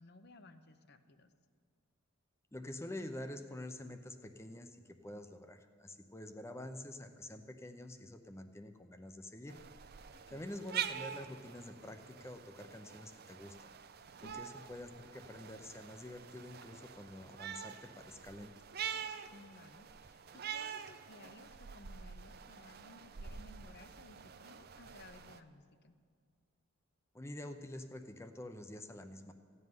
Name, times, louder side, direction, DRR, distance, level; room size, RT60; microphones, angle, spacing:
voice 1, 0.0-1.3 10.1-10.4 14.2-14.5 19.3-26.0, left 2 dB, 50° left, 10 dB, 0.7 m, -58 dB
voice 2, 2.5-9.6 10.3-13.7 14.2-18.6 27.1-29.3, left 1 dB, 15° left, 8 dB, 0.6 m, -47 dB
sound 1, 9.5-25.4, right 8 dB, 50° right, 0.5 m, -46 dB
15.0 x 5.5 x 9.5 m, 2.1 s
head